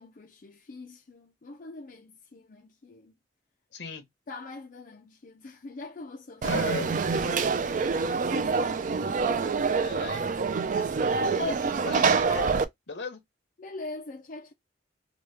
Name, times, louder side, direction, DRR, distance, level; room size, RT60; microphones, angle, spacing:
voice 1, 0.0-3.1 4.3-6.6 13.6-14.5, left 2 dB, 45° left, 0.5 m, -43 dB
voice 2, 3.7-4.0 6.4-6.9 9.8-10.3 11.2-12.5 12.9-13.2, left 3 dB, 70° left, 1.0 m, -36 dB
Conversation / Crowd, 6.4-12.7, right 5 dB, 45° right, 0.4 m, -26 dB
3.0 x 2.2 x 3.3 m
head